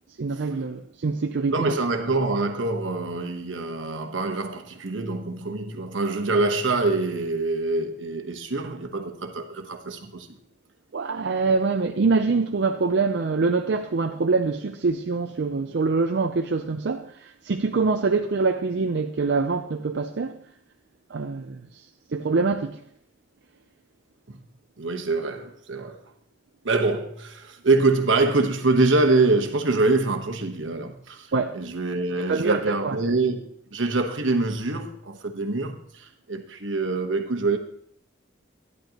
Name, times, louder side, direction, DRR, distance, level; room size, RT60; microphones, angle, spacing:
voice 1, 0.2-1.7 10.9-20.4 21.1-21.6 22.1-22.8 31.3-31.6 32.0-33.0, right 4 dB, 65° right, 0.5 m, -24 dB
voice 2, 1.5-10.4 24.3-24.4 24.8-26.0 26.6-37.6, right 3 dB, 80° right, 1.1 m, -25 dB
11.5 x 11.0 x 2.9 m
head